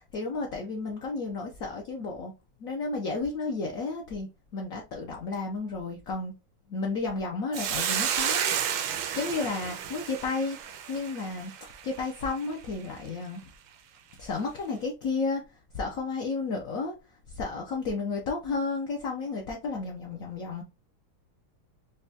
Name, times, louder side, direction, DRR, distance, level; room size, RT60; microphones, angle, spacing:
voice 1, 0.0-2.3 2.6-6.3 6.7-8.6 9.1-11.5 11.8-13.4 14.2-15.4 15.7-16.9 17.3-20.6, left 3 dB, 75° left, 0.8 m, -32 dB
Hiss, 7.5-12.0, right 9 dB, 80° right, 1.4 m, -31 dB
5.2 x 2.2 x 2.7 m
omnidirectional pair, 2.3 m